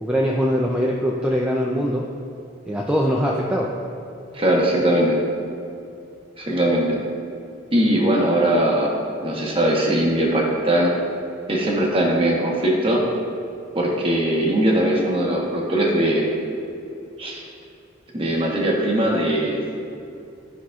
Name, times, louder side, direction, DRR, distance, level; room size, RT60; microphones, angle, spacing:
voice 1, 0.0-2.1 2.7-3.7, equal, 5° right, -3 dB, 0.3 m, -22 dB
voice 2, 4.3-5.2 6.4-7.0 7.7-8.9 9.2-10.9 11.5-13.0 13.7-16.3 17.2-17.4 18.1-19.7, right 1 dB, 25° right, -2 dB, 1.0 m, -20 dB
11.0 x 5.7 x 2.4 m, 2.5 s
head